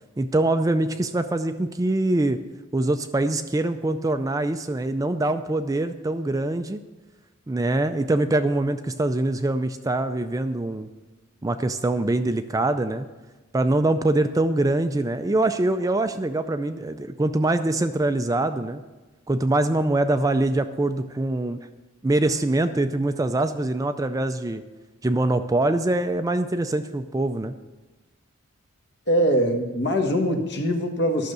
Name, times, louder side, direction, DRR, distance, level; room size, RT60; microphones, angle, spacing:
voice 1, 0.2-2.4 2.7-6.8 7.5-10.9 11.4-13.1 13.5-18.8 19.3-21.6 22.0-24.6 25.0-27.5, right 2 dB, 15° right, 9 dB, 0.3 m, -24 dB
voice 2, 29.1-31.3, equal, 55° left, 4 dB, 1.4 m, -22 dB
12.0 x 6.5 x 6.7 m, 1.2 s
head